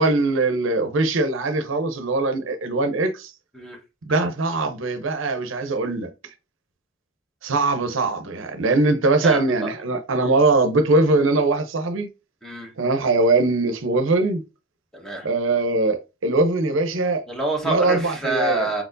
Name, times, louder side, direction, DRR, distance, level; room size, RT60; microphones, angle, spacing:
voice 1, 0.0-3.3 4.1-6.1 7.4-12.1 12.8-14.4 15.2-17.2 17.6-18.7, right 2 dB, 75° right, 0.7 m, -21 dB
voice 2, 14.9-15.3 17.3-18.8, right 2 dB, ahead, 1.1 m, -26 dB
4.5 x 4.2 x 2.6 m
head